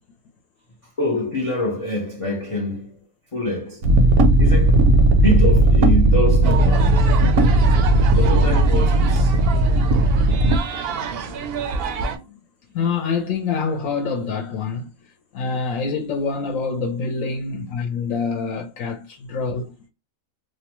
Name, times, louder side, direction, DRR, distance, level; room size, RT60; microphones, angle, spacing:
voice 1, 1.0-2.9 3.3-3.8 4.4-7.0 8.1-9.3, left 1 dB, 55° left, 0.3 m, -25 dB
sound 1, 3.8-10.6, right 1 dB, 85° right, 1.1 m, -16 dB
sound 2, 6.4-12.2, right 6 dB, 65° right, 0.6 m, -29 dB
voice 2, 10.9-11.4 12.0-12.2 12.7-14.9 15.3-19.7, left 5 dB, 75° left, 0.9 m, -26 dB
2.7 x 2.1 x 2.9 m
omnidirectional pair, 1.4 m